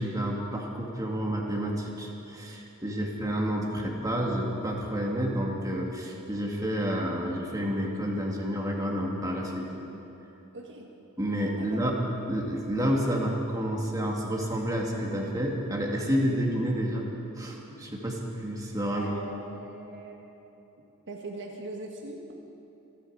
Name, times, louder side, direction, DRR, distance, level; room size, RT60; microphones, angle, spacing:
voice 1, 0.0-9.7 11.2-12.0 12.3-17.1 17.4-19.1, equal, 15° right, -2 dB, 2.1 m, -29 dB
voice 2, 10.5-10.9 11.5-11.8 17.8-17.9 18.9-20.3 21.1-22.4, right 2 dB, 55° right, 1 dB, 1.6 m, -41 dB
27.0 x 10.5 x 4.9 m, 3.0 s
head